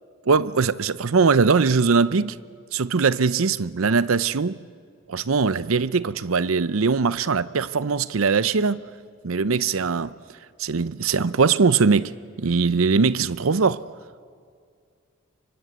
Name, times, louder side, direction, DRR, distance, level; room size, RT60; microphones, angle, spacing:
voice 1, 0.3-2.4 2.7-4.6 5.1-8.8 9.2-10.1 10.6-12.1 12.4-13.8, right 5 dB, 80° right, 0.7 m, -21 dB
29.5 x 25.0 x 8.0 m
head